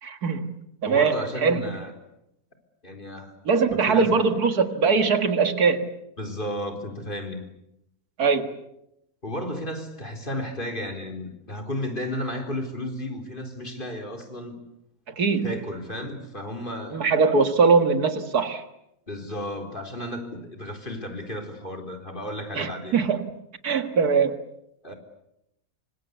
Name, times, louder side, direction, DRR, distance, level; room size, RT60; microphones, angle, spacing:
voice 1, 0.0-1.7 3.5-5.9 8.2-8.6 15.1-15.6 16.9-18.6 22.5-23.3 23.6-24.4, right 5 dB, 80° right, 2.3 m, -22 dB
voice 2, 0.9-1.9 2.8-3.3 3.9-4.1 6.2-7.4 9.2-14.6 15.4-17.0 19.1-23.0 24.8-24.9, left 1 dB, 35° left, 4.2 m, -33 dB
27.0 x 25.5 x 8.3 m
omnidirectional pair, 1.6 m